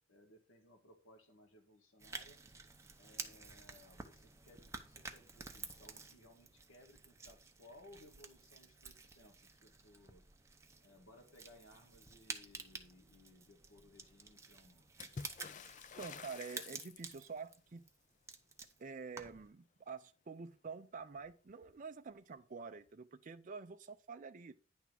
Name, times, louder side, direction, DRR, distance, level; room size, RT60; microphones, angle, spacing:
voice 1, 0.0-2.4 3.0-10.2 10.8-14.9, left 1 dB, 90° left, 1.5 m, -62 dB
sound 1, 2.0-19.5, right 4 dB, 15° right, 0.8 m, -51 dB
Water / Splash splatter, 15.0-17.4 20.7-20.8 21.0-21.8 22.9-23.0, left 5 dB, 40° left, 0.4 m, -50 dB
voice 2, 16.0-17.8 18.8-24.5, right 5 dB, 40° right, 0.5 m, -48 dB
10.0 x 3.6 x 6.1 m
head